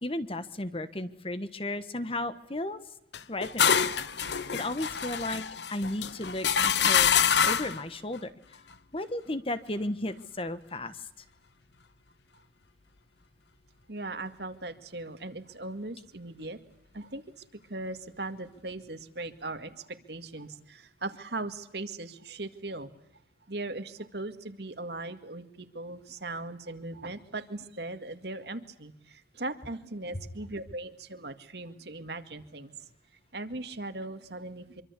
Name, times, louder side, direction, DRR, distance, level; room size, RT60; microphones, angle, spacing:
voice 1, 0.0-2.8 3.3-3.9 4.5-5.4 5.7-7.1 7.4-8.3 8.9-11.0, left 1 dB, 30° left, 12 dB, 1.4 m, -34 dB
sound 1, 3.1-7.8, left 7 dB, 70° left, 1.0 m, -26 dB
voice 2, 13.9-16.6 16.9-22.9 23.5-32.9 33.3-34.8, right 2 dB, 65° right, 8 dB, 2.2 m, -39 dB
26.0 x 24.0 x 8.4 m, 0.81 s
head